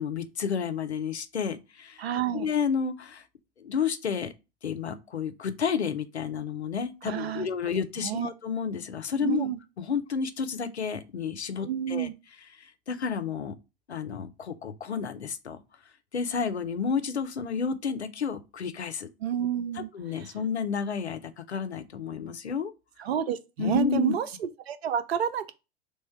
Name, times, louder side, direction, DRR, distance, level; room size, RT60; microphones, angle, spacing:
voice 1, 0.0-2.1 2.3-3.2 3.6-4.3 4.6-9.5 9.8-12.1 12.6-13.5 13.9-15.6 16.1-19.1 19.7-22.7 23.6-24.1, left 6 dB, 85° left, 0.5 m, -31 dB
voice 2, 2.0-2.5 7.0-7.5 8.0-8.3 9.2-9.6 11.6-12.1 19.2-19.9 20.2-20.3 23.0-25.5, right 9 dB, 70° right, 0.5 m, -30 dB
3.2 x 2.2 x 4.2 m
figure-of-eight pair, 85°, 32 cm